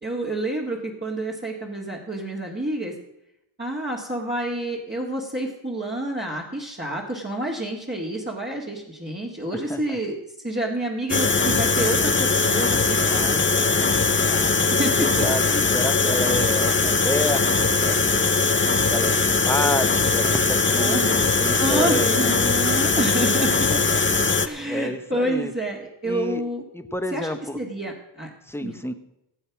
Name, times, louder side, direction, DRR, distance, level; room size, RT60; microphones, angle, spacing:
voice 1, 0.0-2.9 3.6-10.2 10.4-15.3 20.7-21.1 21.6-23.7 24.4-26.6 27.1-28.3 28.6-28.7, right 1 dB, 20° right, -4 dB, 2.2 m, -29 dB
sound 1, 11.1-24.5, left 4 dB, 25° left, 0.8 m, -21 dB
voice 2, 14.9-18.3 18.9-22.4 23.7-23.8 24.3-25.5 26.0-26.4 26.7-27.6 28.5-28.9, left 1 dB, 5° left, 9 dB, 1.2 m, -29 dB
17.0 x 8.1 x 6.0 m, 0.86 s
wide cardioid pair, 55°, 49 cm